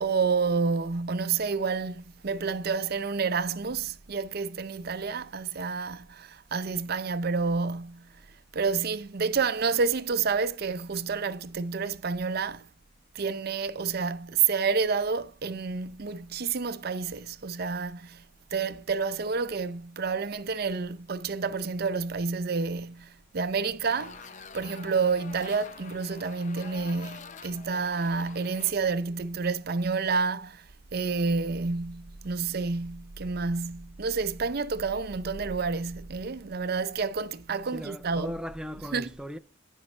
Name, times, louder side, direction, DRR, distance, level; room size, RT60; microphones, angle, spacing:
voice 1, 0.0-8.1 8.5-12.7 13.1-18.2 18.5-24.3 24.5-38.4 38.8-39.1, right 5 dB, 55° right, 0.6 m, -29 dB
sound 1, 23.8-28.7, left 5 dB, 40° left, 0.7 m, -46 dB
voice 2, 37.7-39.4, equal, 5° right, 0.3 m, -38 dB
15.5 x 5.4 x 3.3 m
head